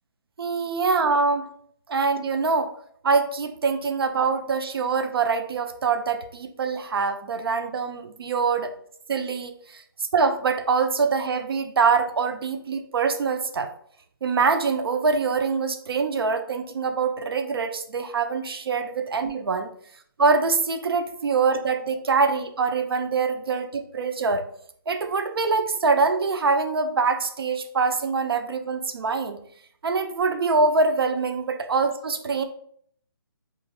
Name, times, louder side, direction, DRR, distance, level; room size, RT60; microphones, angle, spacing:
voice 1, 0.4-1.5 1.9-2.7 3.0-8.7 9.1-9.8 10.1-13.7 14.2-19.7 20.2-24.4 24.9-29.4 29.8-32.4, right 4 dB, 90° right, 8 dB, 0.4 m, -24 dB
2.4 x 2.2 x 2.8 m, 0.64 s
hypercardioid pair, 165°, 12 cm